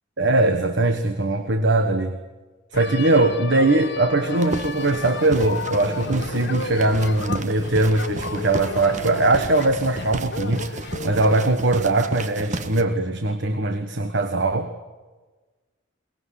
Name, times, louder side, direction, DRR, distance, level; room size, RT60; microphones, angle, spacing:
voice 1, 0.2-2.2 2.7-14.7, right 2 dB, 65° right, 8 dB, 1.5 m, -21 dB
sound 1, 2.7-11.5, left 3 dB, 60° left, 1.5 m, -33 dB
sound 2, 4.4-12.8, right 2 dB, 40° right, 1.4 m, -34 dB
22.5 x 20.0 x 10.0 m, 1.3 s
head